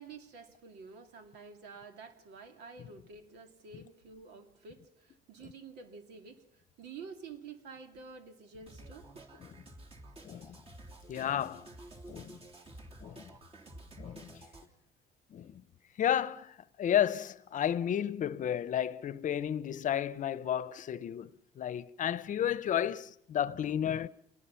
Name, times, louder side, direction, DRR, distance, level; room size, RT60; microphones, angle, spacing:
voice 1, 0.0-9.2, right 5 dB, 80° right, 2.8 m, -50 dB
sound 1, 8.7-14.7, right 1 dB, 35° right, 3.3 m, -51 dB
voice 2, 10.2-10.6 11.1-11.7 12.1-12.4 13.0-13.2 14.0-14.4 15.3-15.6 16.0-21.3 21.6-24.1, left 10 dB, 50° left, 0.8 m, -32 dB
26.5 x 20.0 x 5.8 m
cardioid pair, 110°, 17 cm